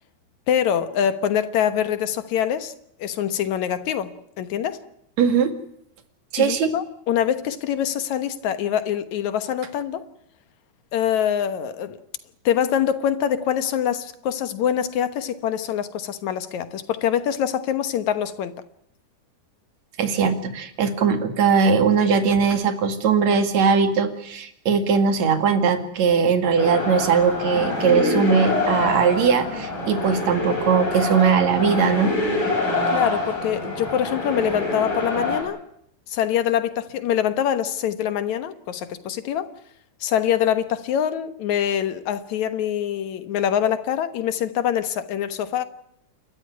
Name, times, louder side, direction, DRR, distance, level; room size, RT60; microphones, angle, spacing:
voice 1, 0.5-2.7 3.0-4.8 6.4-10.1 10.9-12.0 12.5-18.5 32.9-35.6 36.1-39.5 40.0-45.6, left 9 dB, 70° left, 2.5 m, -24 dB
voice 2, 5.2-5.5 6.3-6.7 20.0-32.1, right 6 dB, 65° right, 3.3 m, -20 dB
sound 1, 26.6-35.4, left 2 dB, 45° left, 8.5 m, -25 dB
29.0 x 13.5 x 9.5 m
omnidirectional pair, 3.5 m